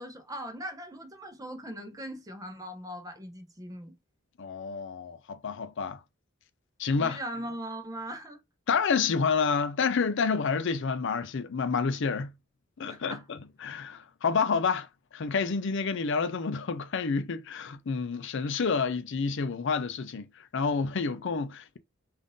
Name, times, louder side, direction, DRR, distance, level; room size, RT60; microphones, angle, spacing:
voice 1, 0.0-3.9 7.0-8.4 12.9-13.2, right 1 dB, 20° right, 0.8 m, -40 dB
voice 2, 4.4-6.0 6.8-7.2 8.7-12.3 12.8-21.8, left 5 dB, 65° left, 0.5 m, -29 dB
3.6 x 2.6 x 3.8 m
head